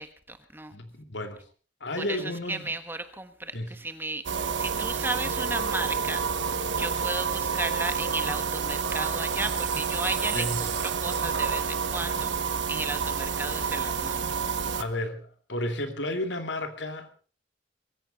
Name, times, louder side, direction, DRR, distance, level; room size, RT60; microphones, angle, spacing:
voice 1, 0.0-0.8 2.0-2.2 2.5-6.3 6.8-12.3 12.7-14.3, right 2 dB, 10° right, 9 dB, 1.3 m, -34 dB
voice 2, 0.7-1.4 1.8-2.7 3.5-3.7 10.3-10.7 14.7-17.1, left 1 dB, 75° left, 6 dB, 2.6 m, -32 dB
sound 1, 4.2-14.8, right 6 dB, 85° right, 1.2 m, -29 dB
23.0 x 14.5 x 4.1 m, 0.38 s
head